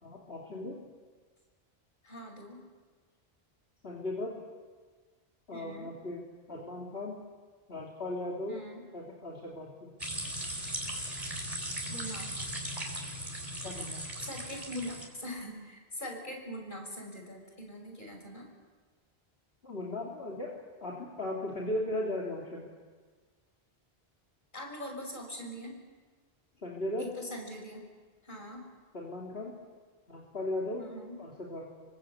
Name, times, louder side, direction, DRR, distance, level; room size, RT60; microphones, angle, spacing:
voice 1, 0.0-0.8 3.8-4.3 5.5-6.2 6.5-7.2 7.7-8.6 8.9-9.9 13.6-14.1 19.6-20.5 20.8-22.6 26.6-27.1 28.9-29.5 30.1-30.8 31.2-31.7, left 1 dB, 70° left, -3 dB, 3.4 m, -37 dB
voice 2, 2.0-2.6 5.5-5.9 8.5-8.9 11.9-12.3 14.2-18.5 24.5-25.8 27.0-27.9 28.2-28.6 30.8-31.2, equal, 50° left, 2 dB, 6.1 m, -42 dB
sound 1, 10.0-15.1, right 1 dB, 35° right, 4.4 m, -38 dB
27.0 x 24.0 x 8.3 m, 1.4 s
omnidirectional pair, 1.1 m